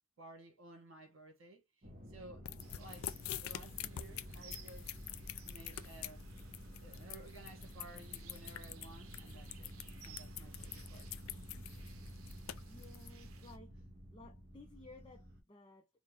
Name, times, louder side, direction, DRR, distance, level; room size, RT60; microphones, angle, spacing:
voice 1, 0.2-4.9 5.4-6.3 6.8-9.7 10.0-11.7, right 2 dB, 70° right, 1.6 m, -56 dB
sound 1, 1.8-15.4, equal, 45° right, 1.1 m, -51 dB
sound 2, 2.5-13.1, left 13 dB, 90° left, 0.4 m, -45 dB
sound 3, 2.6-13.6, right 5 dB, 90° right, 0.7 m, -58 dB
voice 2, 12.7-13.7 14.1-15.9, left 2 dB, 25° left, 0.5 m, -57 dB
4.2 x 2.2 x 3.5 m
head